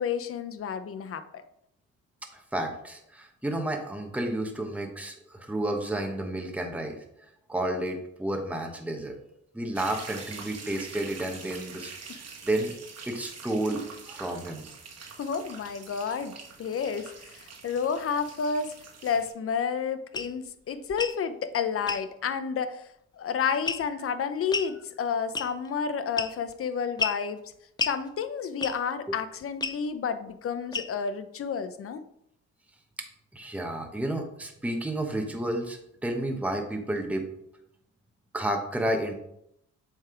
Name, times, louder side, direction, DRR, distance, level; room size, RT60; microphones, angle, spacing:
voice 1, 0.0-1.4 15.2-18.7 19.0-27.4 27.8-32.0, left 6 dB, 50° left, 11 dB, 0.7 m, -30 dB
voice 2, 2.3-7.0 7.5-9.2 9.5-11.9 12.4-12.7 13.1-14.7 29.1-29.2 33.3-37.3 38.3-39.1, right 1 dB, 5° right, 3 dB, 1.1 m, -31 dB
sound 1, 9.7-19.3, right 5 dB, 55° right, 1.4 m, -45 dB
sound 2, 20.1-20.3 20.9-21.2 21.9-22.1 23.7-24.0 24.5-24.7 25.4-25.7 26.2-26.5 27.0-27.2 27.8-28.0 28.6-28.9 29.6-29.8 30.7-31.1, left 4 dB, 15° left, 0.3 m, -31 dB
7.3 x 3.5 x 4.4 m, 0.76 s
cardioid pair, 90°, 30 cm